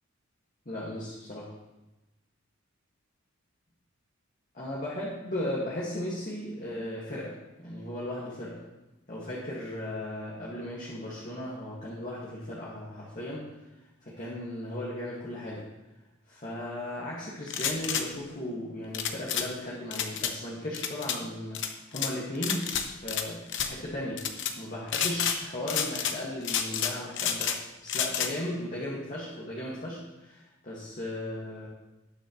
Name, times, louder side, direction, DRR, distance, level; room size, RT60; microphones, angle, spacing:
voice 1, 0.7-1.5 4.5-8.6 9.1-13.5 14.0-15.7 16.3-24.3 24.6-31.7, left 1 dB, 40° left, -6 dB, 1.9 m, -36 dB
sound 1, 17.5-18.1 18.9-19.5 19.9-20.3 20.7-21.2 21.5-22.1 22.4-23.2 23.5-23.7 24.2-24.5 24.9-25.4 25.7-26.2 26.4-27.6 27.9-28.3, left 8 dB, 60° left, 0.9 m, -30 dB
18.5 x 6.4 x 3.1 m, 1.0 s
head